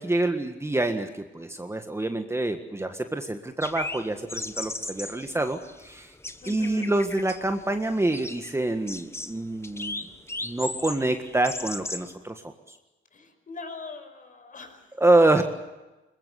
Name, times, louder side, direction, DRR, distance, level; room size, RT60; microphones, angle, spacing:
voice 1, 0.0-6.1 6.5-10.1 10.4-12.4 12.7-12.8 15.0-15.4, right 2 dB, 15° right, 6 dB, 1.7 m, -26 dB
sound 1, 3.6-12.1, left 2 dB, 15° left, 1.4 m, -37 dB
voice 2, 6.4-6.9 13.1-14.9, left 4 dB, 40° left, 7 dB, 5.2 m, -42 dB
22.5 x 21.0 x 8.2 m, 1.1 s
cardioid pair, 90°, 20 cm